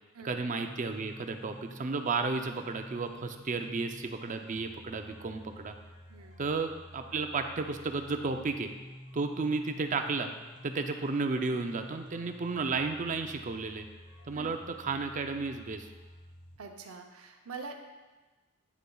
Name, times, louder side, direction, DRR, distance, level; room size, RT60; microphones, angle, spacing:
voice 1, 0.2-5.7 6.4-8.7 9.1-10.3 10.6-13.9 14.3-15.9, right 4 dB, 35° right, 6 dB, 0.5 m, -33 dB
sound 1, 0.6-16.6, equal, 45° left, 1.5 m, -51 dB
voice 2, 6.1-6.4 14.3-14.5 16.6-17.7, right 4 dB, 85° right, 4 dB, 0.7 m, -44 dB
9.3 x 6.7 x 2.3 m, 1.2 s
head